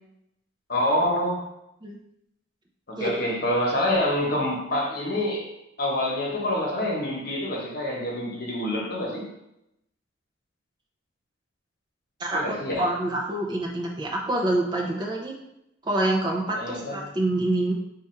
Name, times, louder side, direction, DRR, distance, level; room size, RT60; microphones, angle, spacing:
voice 1, 0.7-1.4 2.9-5.5 5.8-9.3 12.3-12.9 16.5-17.0, left 1 dB, 50° left, -2 dB, 1.1 m, -26 dB
voice 2, 12.8-15.4 15.8-17.7, right 1 dB, 25° right, -1 dB, 0.5 m, -26 dB
4.2 x 2.4 x 4.4 m, 0.84 s
head